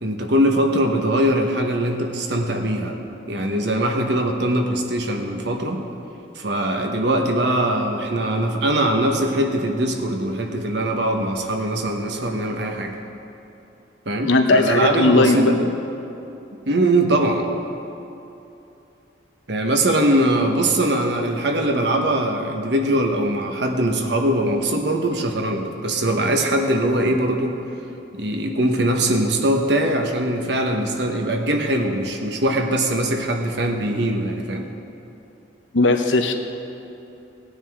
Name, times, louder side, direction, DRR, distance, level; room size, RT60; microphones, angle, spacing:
voice 1, 0.0-3.0 3.3-5.8 6.3-13.0 14.1-15.7 16.7-17.5 19.5-27.6 28.2-34.7, right 1 dB, 65° right, 3 dB, 1.2 m, -21 dB
voice 2, 14.2-15.5 35.7-36.3, left 2 dB, 85° left, 6 dB, 0.9 m, -17 dB
17.5 x 9.3 x 3.7 m, 2.9 s
head